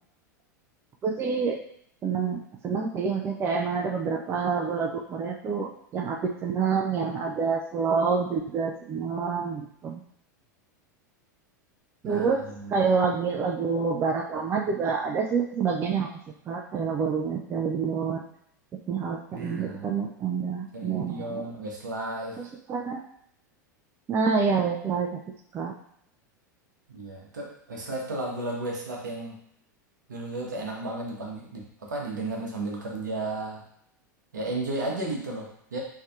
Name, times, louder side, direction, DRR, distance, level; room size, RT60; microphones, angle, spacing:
voice 1, 1.0-1.6 2.0-10.0 12.0-12.4 12.7-18.2 18.9-21.4 22.4-23.0 24.1-25.2 25.5-25.7, right 5 dB, 25° right, 1 dB, 0.4 m, -27 dB
voice 2, 12.0-12.8 19.3-20.0 20.7-22.4 26.9-29.4 30.1-33.6 34.3-35.8, right 2 dB, 75° right, -1 dB, 0.8 m, -34 dB
3.2 x 2.7 x 2.4 m, 0.69 s
figure-of-eight pair, 85°, 10 cm